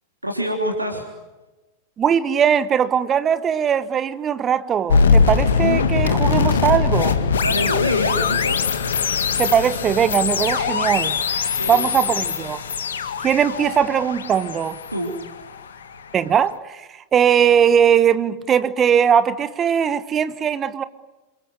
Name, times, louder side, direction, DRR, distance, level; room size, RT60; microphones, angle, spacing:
voice 1, 0.2-1.1 7.4-8.6 11.5-12.0 14.9-15.1, equal, 85° right, 3.2 m, -26 dB
voice 2, 2.0-7.2 9.4-11.2 11.7-12.6 13.2-14.8 16.1-20.8, right 8 dB, 25° right, 1.1 m, -19 dB
sound 1, 4.9-15.9, left 5 dB, 65° left, 2.1 m, -21 dB
27.5 x 23.0 x 7.9 m
figure-of-eight pair, 90°, 0 cm